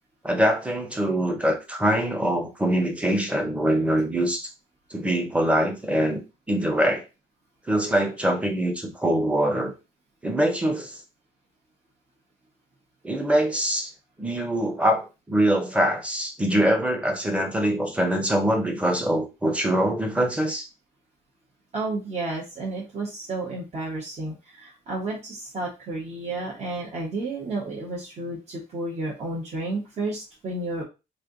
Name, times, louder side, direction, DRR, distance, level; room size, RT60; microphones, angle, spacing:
voice 1, 0.2-4.5 4.9-6.2 6.5-7.0 7.7-9.7 10.2-11.0 13.0-13.9 14.2-20.7, right 1 dB, 5° right, 4 dB, 0.9 m, -23 dB
voice 2, 21.7-30.8, right 2 dB, 35° right, -4 dB, 1.2 m, -31 dB
3.3 x 2.6 x 3.8 m, 0.28 s
cardioid pair, 130°, 18 cm